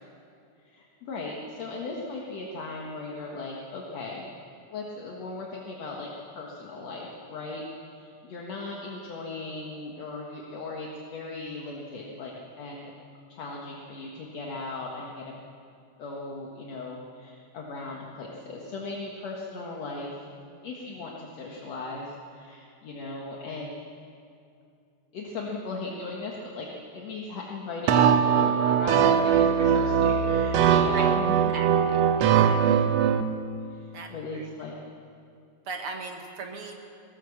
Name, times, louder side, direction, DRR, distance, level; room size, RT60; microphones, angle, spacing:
voice 1, 0.6-4.3 4.7-7.6 8.0-12.3 12.6-12.9 13.3-15.3 16.0-20.1 20.6-23.8 25.1-26.7 26.9-31.5 32.6-32.9 33.7-34.7, left 3 dB, 60° left, -2 dB, 2.7 m, -37 dB
sound 1, 27.9-33.2, right 8 dB, 70° right, 1.9 m, -21 dB
voice 2, 31.5-32.6 33.9-34.5 35.7-36.8, right 4 dB, 50° right, 3 dB, 2.2 m, -39 dB
20.5 x 17.5 x 7.2 m, 2.5 s
omnidirectional pair, 3.4 m